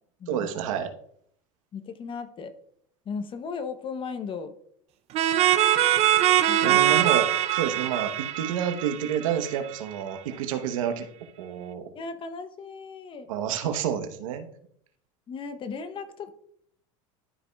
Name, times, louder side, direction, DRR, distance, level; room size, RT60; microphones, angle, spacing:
voice 1, 0.3-0.9 6.6-11.1 11.4-11.8 13.3-14.5, right 9 dB, 85° right, 8 dB, 1.0 m, -29 dB
voice 2, 1.7-2.5 3.1-4.5 6.5-6.8 11.9-13.3 15.3-16.3, left 5 dB, 30° left, 10 dB, 0.8 m, -36 dB
sound 1, 5.1-9.7, right 12 dB, 40° right, 0.5 m, -22 dB
12.5 x 5.0 x 2.3 m, 0.67 s
supercardioid pair, 115°, 17 cm